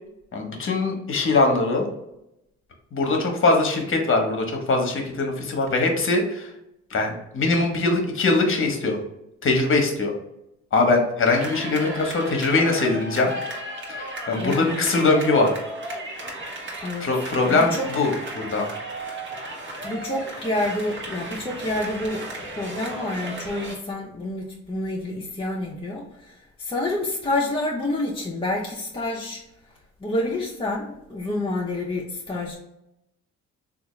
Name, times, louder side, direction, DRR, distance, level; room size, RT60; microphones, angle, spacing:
voice 1, 0.3-1.9 2.9-6.5 6.9-9.0 9.4-10.1 10.7-13.3 13.9-15.6 17.0-18.7, left 3 dB, 45° left, 3 dB, 0.9 m, -22 dB
sound 1, 11.3-23.8, right 1 dB, 40° right, 1.1 m, -34 dB
voice 2, 14.3-14.7 16.8-17.1 17.5-17.9 19.8-29.4 30.0-32.5, left 1 dB, 20° left, -5 dB, 0.6 m, -28 dB
3.4 x 2.4 x 3.1 m, 0.85 s
cardioid pair, 90°, 30 cm